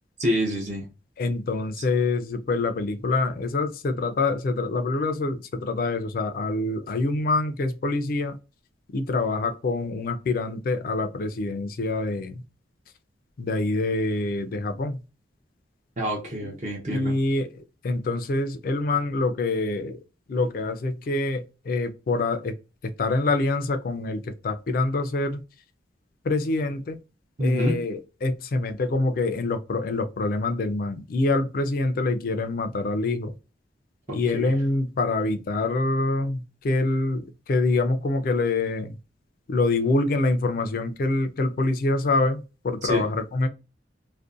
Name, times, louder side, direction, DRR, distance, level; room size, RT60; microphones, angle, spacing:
voice 1, 0.2-0.8 1.8-1.9 16.0-17.1 27.4-27.8 34.1-34.6 42.8-43.1, equal, 40° right, 0.6 m, -27 dB
voice 2, 1.2-8.4 8.9-12.4 13.4-15.0 16.9-20.0 20.3-22.5 23.0-25.4 26.2-27.0 27.4-33.3 34.1-38.9 39.5-43.5, left 2 dB, 50° left, 0.3 m, -25 dB
2.5 x 2.1 x 2.4 m
head